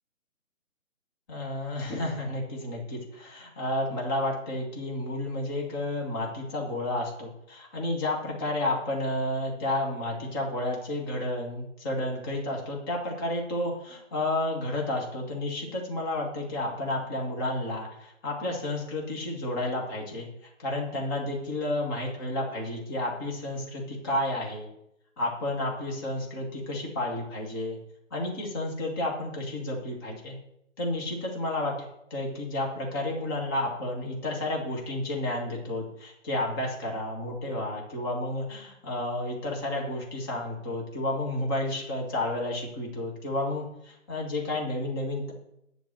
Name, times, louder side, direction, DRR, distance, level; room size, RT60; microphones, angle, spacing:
voice 1, 1.3-20.3 20.6-24.7 25.2-27.8 28.1-30.4 30.8-45.3, left 1 dB, 15° left, -1 dB, 1.6 m, -31 dB
10.5 x 4.1 x 7.3 m, 0.82 s
figure-of-eight pair, 155°, 40 cm